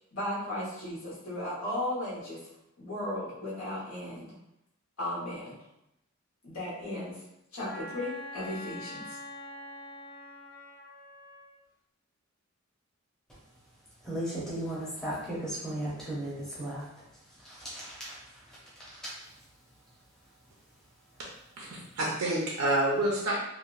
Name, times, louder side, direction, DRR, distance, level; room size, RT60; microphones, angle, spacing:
voice 1, 0.1-2.4 2.8-4.4 5.0-5.6 6.4-7.2 7.5-9.2, left 1 dB, 90° left, -7 dB, 1.3 m, -35 dB
Wind instrument woodwind instrument, 7.7-11.5, left 1 dB, 45° left, 0.8 m, -44 dB
voice 2, 14.0-16.8 17.4-19.1, right 1 dB, 5° left, -8 dB, 0.6 m, -36 dB
voice 3, 21.6-23.4, right 1 dB, 80° right, -4 dB, 0.6 m, -28 dB
2.9 x 2.3 x 2.3 m, 0.85 s
head